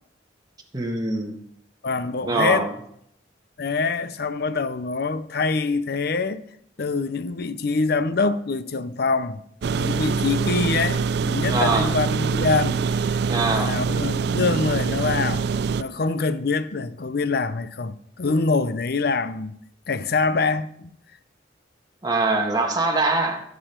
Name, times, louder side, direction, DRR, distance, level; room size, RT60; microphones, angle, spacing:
voice 1, 0.7-1.3 2.2-2.7 11.5-11.9 13.3-13.7 22.0-23.4, right 3 dB, 20° right, 1.6 m, -23 dB
voice 2, 1.8-2.7 3.6-6.4 6.8-9.4 9.7-12.8 13.1-15.4 15.8-19.5 19.9-20.9, left 4 dB, 55° left, 0.6 m, -25 dB
sound 1, 9.6-15.8, right 5 dB, 60° right, 0.4 m, -24 dB
14.5 x 7.1 x 4.5 m
head